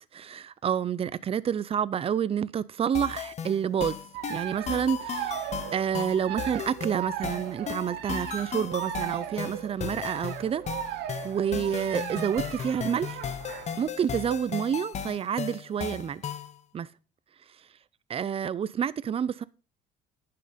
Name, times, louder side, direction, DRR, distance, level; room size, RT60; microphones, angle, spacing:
voice 1, 0.1-4.0 4.3-5.2 5.7-13.2 13.8-16.2 16.7-16.9 18.1-19.4, right 8 dB, 35° right, 0.5 m, -29 dB
sound 1, 2.9-16.6, left 8 dB, 40° left, 0.8 m, -36 dB
sound 2, 4.1-13.8, right 11 dB, 80° right, 1.1 m, -37 dB
10.5 x 5.8 x 5.0 m
cardioid pair, 110°, 17 cm